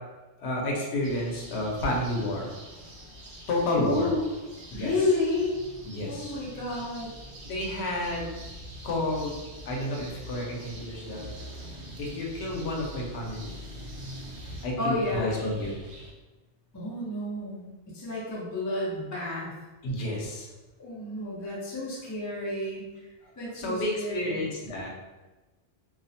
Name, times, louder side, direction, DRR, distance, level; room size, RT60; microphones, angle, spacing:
voice 1, 0.4-2.5 3.5-4.1 4.7-4.9 5.9-6.3 7.4-8.3 8.8-9.3 9.7-11.2 12.0-13.6 14.6-15.8 19.8-20.5 23.5-24.9, left 1 dB, 80° left, -2 dB, 0.8 m, -30 dB
sound 1, 1.0-16.1, equal, 80° right, 0.9 m, -44 dB
voice 2, 3.8-4.2 4.7-5.5 6.1-7.1 14.8-15.3 16.7-19.5 20.8-22.9 23.4-24.4, left 2 dB, 25° left, -6 dB, 0.4 m, -31 dB
2.3 x 2.0 x 2.6 m, 1.1 s
omnidirectional pair, 1.1 m